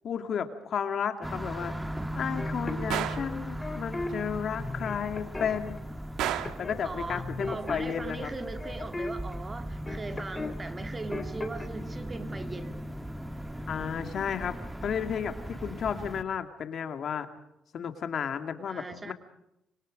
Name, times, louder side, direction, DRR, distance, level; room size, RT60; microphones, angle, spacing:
voice 1, 0.0-1.7 2.2-5.8 6.6-8.3 13.7-14.6 14.8-17.3 17.7-19.1, left 7 dB, 60° left, 8 dB, 2.2 m, -33 dB
sound 1, 1.2-16.2, equal, 10° right, 1.5 m, -38 dB
sound 2, 2.4-4.1 4.6-5.8 6.4-6.8 7.1-10.6 10.8-11.7, left 3 dB, 20° left, 3.2 m, -38 dB
Gunshot gunfire, 2.9-3.3 6.2-6.7, right 11 dB, 90° right, 1.3 m, -31 dB
voice 2, 6.8-12.8 18.7-19.1, right 3 dB, 25° right, 7 dB, 2.3 m, -39 dB
26.5 x 23.5 x 5.2 m, 0.83 s
cardioid pair, 90°, 0 cm